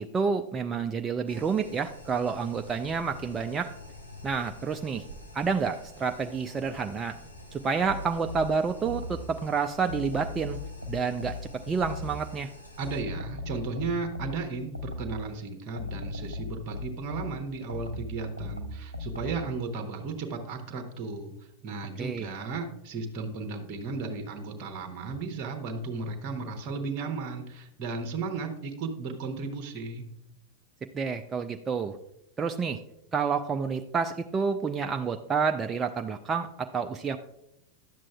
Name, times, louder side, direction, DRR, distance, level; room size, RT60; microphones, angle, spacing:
voice 1, 0.0-3.7 4.2-5.0 5.3-7.2 7.5-10.6 10.9-11.4 11.7-12.5 22.0-22.3 30.9-32.0 32.4-32.8 33.1-37.2, right 5 dB, 20° right, 6 dB, 0.3 m, -29 dB
sound 1, 1.3-13.0, left 1 dB, 85° left, 1.1 m, -47 dB
sound 2, 7.9-9.4 9.9-12.3 12.8-15.3 15.8-19.5, left 3 dB, 90° right, 0.4 m, -38 dB
voice 2, 12.8-21.3 21.6-30.1, right 4 dB, 35° right, 5 dB, 0.9 m, -35 dB
11.0 x 7.4 x 2.3 m, 0.82 s
figure-of-eight pair, 90°, 0 cm